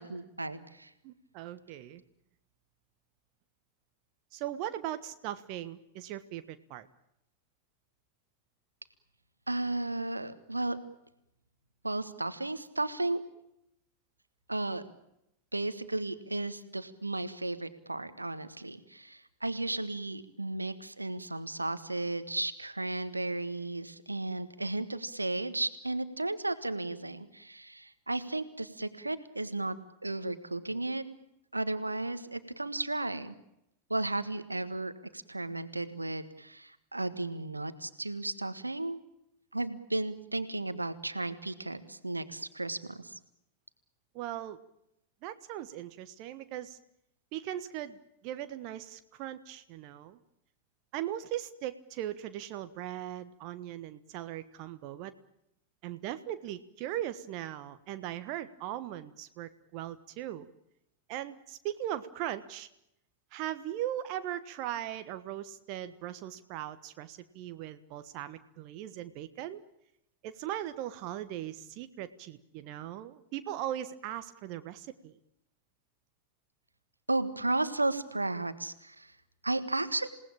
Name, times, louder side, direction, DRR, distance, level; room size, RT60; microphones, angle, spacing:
voice 1, 0.0-0.9 9.5-10.8 11.8-13.2 14.5-14.8 15.5-29.8 30.0-31.0 31.5-33.3 33.9-39.0 39.5-43.2 77.1-79.1 79.4-80.1, right 2 dB, 85° right, 13 dB, 1.6 m, -34 dB
voice 2, 1.0-2.0 4.3-6.9 44.1-44.6 45.2-46.8 47.3-48.0 48.2-50.2 50.9-55.1 55.8-60.5 61.1-62.7 63.3-69.6 70.2-75.1, right 12 dB, 45° right, 11 dB, 1.3 m, -39 dB
28.0 x 18.5 x 8.9 m, 0.82 s
figure-of-eight pair, 90°, 0 cm